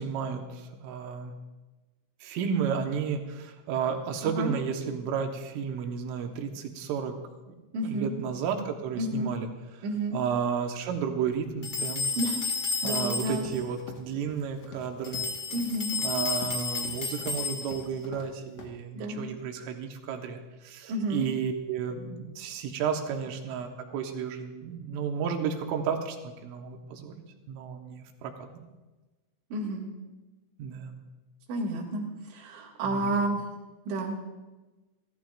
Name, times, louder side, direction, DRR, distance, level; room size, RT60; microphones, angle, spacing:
voice 1, 0.0-1.3 2.2-7.2 7.5-7.6 7.8-9.5 10.1-12.1 12.8-15.3 16.0-28.6 30.6-31.0 32.8-33.1, right 7 dB, 90° right, 4 dB, 3.8 m, -32 dB
voice 2, 4.2-4.6 7.7-8.1 9.0-9.3 9.8-10.2 12.2-12.4 12.8-13.5 15.5-16.0 18.9-19.3 20.9-21.3 29.5-29.9 31.5-33.4 33.9-34.2, right 1 dB, 75° right, -5 dB, 4.5 m, -30 dB
sound 1, 11.6-13.6 15.0-17.9, left 4 dB, 30° left, 1.9 m, -32 dB
Run, 13.1-18.3 18.6-18.7, left 4 dB, 75° left, 1.4 m, -46 dB
28.5 x 14.0 x 2.5 m, 1.2 s
omnidirectional pair, 5.5 m